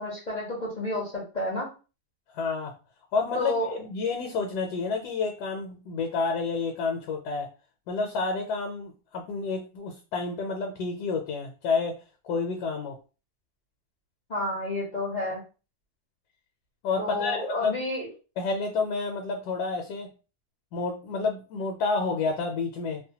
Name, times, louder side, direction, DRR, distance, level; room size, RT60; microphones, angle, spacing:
voice 1, 0.0-1.7 3.3-3.7 14.3-15.4 17.0-18.1, left 1 dB, 50° left, -4 dB, 0.5 m, -30 dB
voice 2, 2.3-2.7 3.1-7.5 7.9-12.0 12.2-13.0 16.8-17.8 18.4-20.1 20.7-23.0, left 4 dB, 75° left, 3 dB, 1.1 m, -29 dB
2.8 x 2.1 x 2.7 m, 0.33 s
omnidirectional pair, 1.8 m